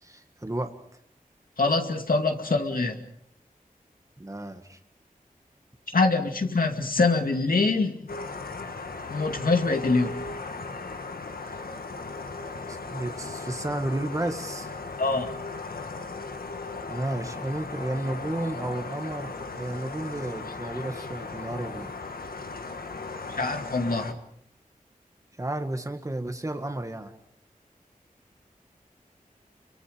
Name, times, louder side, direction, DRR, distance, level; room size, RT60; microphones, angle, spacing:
voice 1, 0.0-0.8 4.2-4.8 11.5-11.6 12.7-14.7 16.9-21.9 25.4-27.1, right 1 dB, 20° right, 6 dB, 1.9 m, -32 dB
voice 2, 1.6-3.0 5.9-8.1 9.1-10.2 15.0-15.4 23.4-24.2, left 3 dB, 75° left, 4 dB, 2.4 m, -24 dB
sound 1, 8.1-24.1, left 3 dB, 90° left, 1.6 m, -37 dB
29.5 x 23.0 x 5.2 m, 0.71 s
wide cardioid pair, 70°, 15 cm